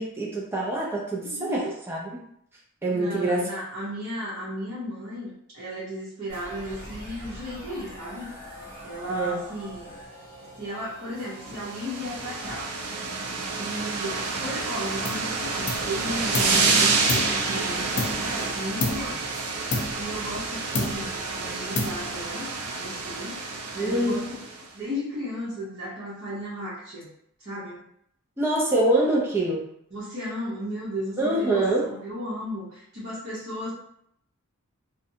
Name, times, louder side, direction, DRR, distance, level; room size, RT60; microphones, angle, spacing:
voice 1, 0.0-2.1 2.8-3.5 9.1-9.4 23.8-24.2 28.4-29.6 31.2-31.9, right 1 dB, 10° right, -4 dB, 0.4 m, -25 dB
voice 2, 1.2-1.7 2.9-8.3 8.8-9.9 10.6-12.7 13.6-19.2 20.0-23.4 23.7-24.4 24.7-27.1 27.4-27.8 29.9-33.7, equal, 55° right, -13 dB, 1.0 m, -35 dB
sound 1, 6.3-13.0, equal, 10° left, 1.2 m, -44 dB
sound 2, 11.4-24.6, right 3 dB, 90° right, 0.5 m, -28 dB
sound 3, 15.0-15.3 15.7-16.6 17.1-18.4 18.8-19.2 19.7-20.5 20.7-21.3 21.7-22.3, left 2 dB, 55° left, 0.4 m, -30 dB
2.6 x 2.1 x 2.6 m, 0.73 s
head